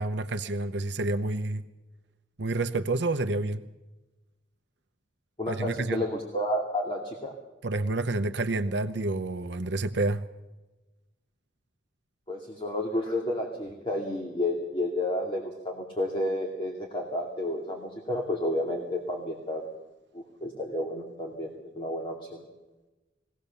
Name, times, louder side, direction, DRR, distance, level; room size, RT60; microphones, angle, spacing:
voice 1, 0.0-1.6 2.4-3.6 5.5-6.0 7.6-10.3, right 2 dB, 65° right, 7 dB, 0.8 m, -29 dB
voice 2, 5.4-7.3 12.3-19.7 20.1-22.4, left 1 dB, 30° left, 0 dB, 2.4 m, -31 dB
22.0 x 17.0 x 7.0 m, 1.1 s
head